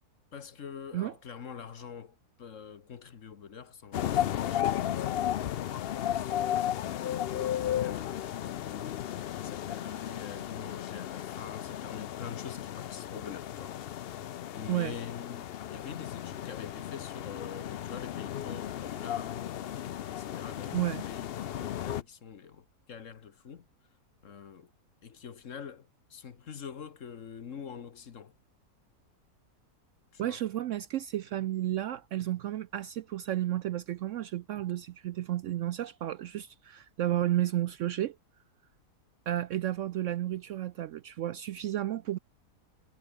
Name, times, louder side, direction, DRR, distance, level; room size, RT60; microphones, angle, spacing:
voice 1, 0.3-13.8 14.5-23.7 24.2-24.7 25.0-28.3 30.1-30.5, left 7 dB, 55° left, 1.4 m, -46 dB
sound 1, 3.9-22.0, left 11 dB, 80° left, 0.5 m, -34 dB
voice 2, 6.8-7.2 14.7-15.0 20.7-21.0 30.2-38.2 39.3-42.2, right 13 dB, 70° right, 0.7 m, -32 dB
omnidirectional pair, 1.7 m